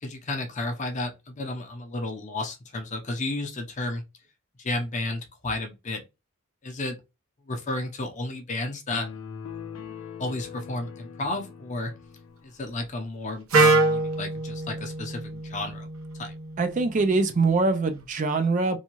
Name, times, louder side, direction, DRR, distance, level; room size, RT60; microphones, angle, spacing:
voice 1, 0.0-4.0 4.6-6.0 6.6-7.0 7.5-9.1 10.2-11.9 12.4-15.9 16.1-16.3, left 2 dB, 35° left, 0.6 m, -32 dB
sound 1, 8.9-12.5, left 6 dB, 85° left, 0.4 m, -41 dB
Wind instrument woodwind instrument, 13.5-17.4, right 2 dB, 85° right, 0.8 m, -25 dB
voice 2, 16.6-18.8, right 3 dB, 35° right, 0.4 m, -23 dB
2.7 x 2.3 x 2.9 m
head